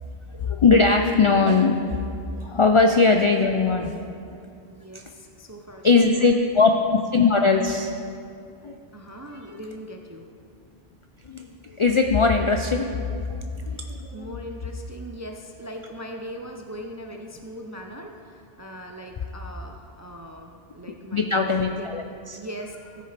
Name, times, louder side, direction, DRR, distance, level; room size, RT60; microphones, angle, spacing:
voice 1, 0.4-2.0 2.3-3.9 4.9-5.0 5.8-7.9 8.6-8.8 9.5-9.6 11.3-12.9 13.3-14.3 21.1-22.4, left 4 dB, 55° left, 4 dB, 0.3 m, -20 dB
voice 2, 4.6-6.3 8.9-10.3 13.7-13.8 14.1-21.9 22.4-23.0, equal, 30° right, 3 dB, 0.3 m, -40 dB
15.0 x 6.7 x 3.3 m, 2.4 s
omnidirectional pair, 1.1 m